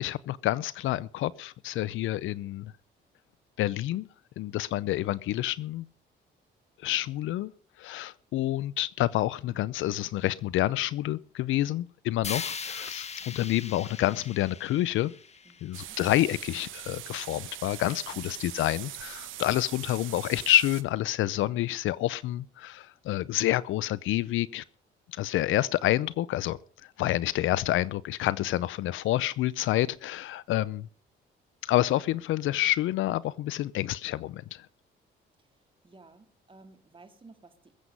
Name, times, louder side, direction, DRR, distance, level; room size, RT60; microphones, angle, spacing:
voice 1, 0.0-2.7 3.6-4.1 4.4-5.9 6.8-7.5 7.8-15.1 15.6-24.6 25.1-26.6 27.0-30.9 31.6-34.7, left 15 dB, 85° left, 0.6 m, -28 dB
sound 1, 12.2-16.3, left 5 dB, 35° left, 1.1 m, -39 dB
voice 2, 15.4-16.0 18.1-18.2 35.8-37.8, right 3 dB, 25° right, 2.4 m, -54 dB
sound 2, 15.7-20.8, right 13 dB, 80° right, 1.1 m, -42 dB
21.5 x 8.0 x 5.4 m
cardioid pair, 90°, 20 cm